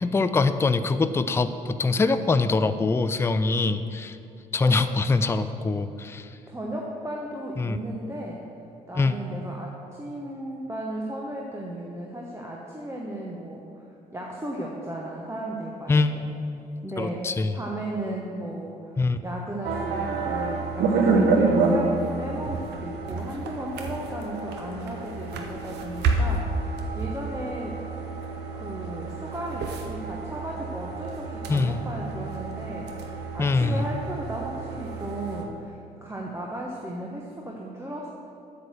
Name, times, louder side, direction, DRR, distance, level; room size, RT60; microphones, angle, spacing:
voice 1, 0.0-4.2 4.5-6.3 7.6-7.8 9.0-9.2 15.9-16.1 17.0-17.5 19.0-19.2 31.5-31.8 33.4-33.8, left 3 dB, 10° left, 11 dB, 0.4 m, -23 dB
voice 2, 6.5-8.4 8.9-13.8 14.1-16.3 16.8-17.3 17.5-19.0 19.2-27.8 28.6-38.1, right 1 dB, 15° right, -2 dB, 1.1 m, -35 dB
sound 1, 19.6-35.5, right 3 dB, 55° right, 0.9 m, -28 dB
8.1 x 6.5 x 6.3 m, 2.6 s
figure-of-eight pair, 45°, 20 cm